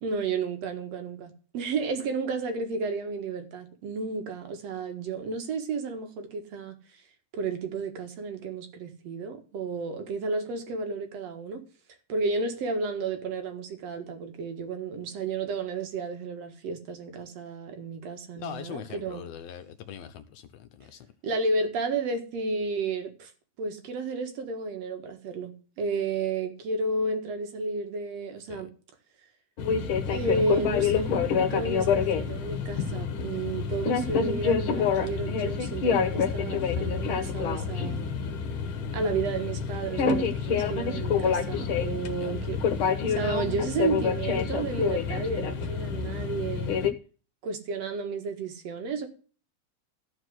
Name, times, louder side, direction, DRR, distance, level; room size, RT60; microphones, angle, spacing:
voice 1, 0.0-7.0 7.3-11.6 12.1-19.3 21.2-23.3 23.6-28.7 30.1-38.1 38.9-42.6 43.1-46.8 47.4-49.1, right 3 dB, 60° right, 2.6 m, -32 dB
voice 2, 18.4-21.1 28.5-28.6 42.1-42.3, left 9 dB, 75° left, 1.6 m, -42 dB
sound 1, 29.6-46.9, left 6 dB, 55° left, 1.6 m, -27 dB
14.0 x 4.7 x 7.8 m
omnidirectional pair, 3.4 m